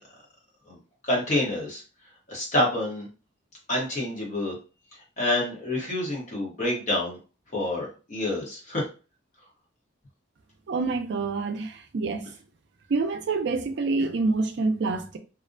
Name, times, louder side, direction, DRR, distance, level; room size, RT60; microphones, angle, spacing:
voice 1, 1.0-1.8 2.3-3.1 3.7-4.5 5.2-7.2 7.5-8.8, left 1 dB, 35° left, 0.9 m, -27 dB
voice 2, 10.7-12.3 12.9-15.2, right 3 dB, 60° right, 0.4 m, -27 dB
2.4 x 2.0 x 2.5 m
head